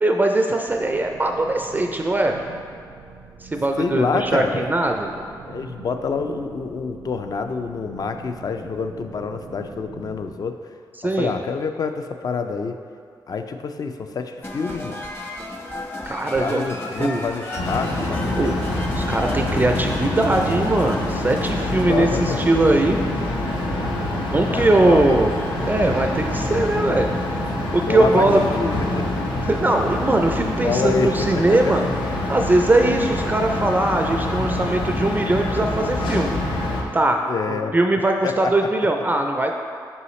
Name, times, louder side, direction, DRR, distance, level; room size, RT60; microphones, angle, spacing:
voice 1, 0.0-2.4 3.4-5.1 11.0-11.3 16.1-16.7 17.0-17.2 18.4-18.6 19.0-23.0 24.3-25.3 25.7-27.1 27.7-28.4 29.4-31.8 32.3-36.3 36.9-39.5, right 2 dB, 20° right, 3 dB, 0.3 m, -20 dB
sound 1, 0.7-10.4, right 4 dB, 75° right, 0.5 m, -42 dB
voice 2, 3.8-4.7 5.4-10.6 11.0-12.7 13.3-15.0 16.3-18.5 19.5-19.8 21.6-22.5 24.5-25.3 27.9-29.3 30.6-31.7 37.3-37.7 38.2-38.5, left 5 dB, 50° left, 7 dB, 0.4 m, -27 dB
sound 2, 14.4-23.0, left 1 dB, 25° left, 0.7 m, -35 dB
sound 3, 17.6-36.8, left 1 dB, 90° left, 0.8 m, -25 dB
5.6 x 5.5 x 3.1 m, 2.2 s
cardioid pair, 85°, 8 cm